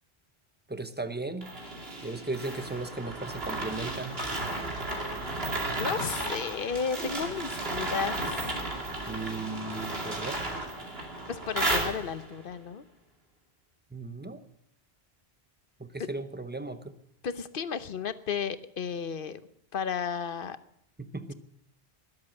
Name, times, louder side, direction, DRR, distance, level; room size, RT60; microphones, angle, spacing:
voice 1, 0.7-1.5 2.0-4.2 9.1-10.4 13.9-14.4 15.8-16.9 21.0-21.3, right 3 dB, 10° right, 10 dB, 0.9 m, -36 dB
sound 1, 1.4-12.4, right 2 dB, 70° right, 2.8 m, -34 dB
voice 2, 4.7-5.1 5.8-8.6 11.3-12.8 17.2-19.4 19.7-20.6, left 6 dB, 60° left, 13 dB, 1.0 m, -33 dB
20.5 x 7.8 x 7.5 m, 0.74 s
omnidirectional pair, 1.1 m